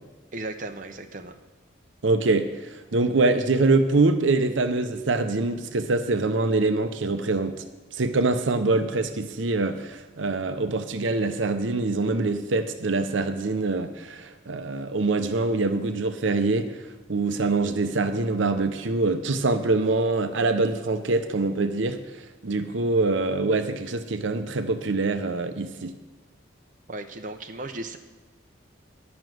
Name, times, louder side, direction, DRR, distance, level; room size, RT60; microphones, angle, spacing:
voice 1, 0.3-1.4 26.9-28.0, right 2 dB, 40° right, 5 dB, 0.7 m, -36 dB
voice 2, 2.0-7.6 7.9-22.0 22.4-25.9, right 3 dB, 75° right, 9 dB, 0.7 m, -24 dB
11.0 x 6.1 x 7.8 m, 1.2 s
head